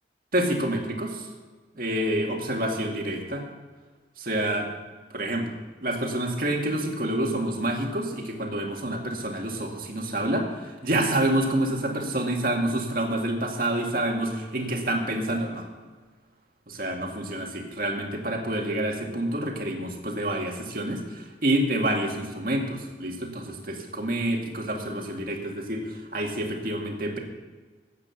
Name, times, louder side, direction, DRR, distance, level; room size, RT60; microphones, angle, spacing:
voice 1, 0.3-1.3 1.8-3.4 4.2-4.7 5.1-5.5 5.8-15.7 16.7-27.2, right 1 dB, 50° right, 1 dB, 2.1 m, -28 dB
14.0 x 8.7 x 7.1 m, 1.4 s
head